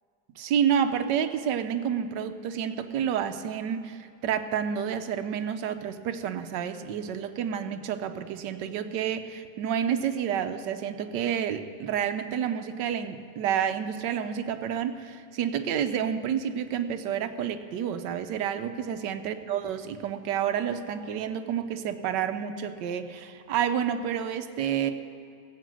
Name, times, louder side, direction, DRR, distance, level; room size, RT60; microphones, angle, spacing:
voice 1, 0.4-24.9, right 8 dB, 90° right, 9 dB, 1.3 m, -29 dB
16.5 x 8.1 x 6.3 m, 2.5 s
omnidirectional pair, 1.9 m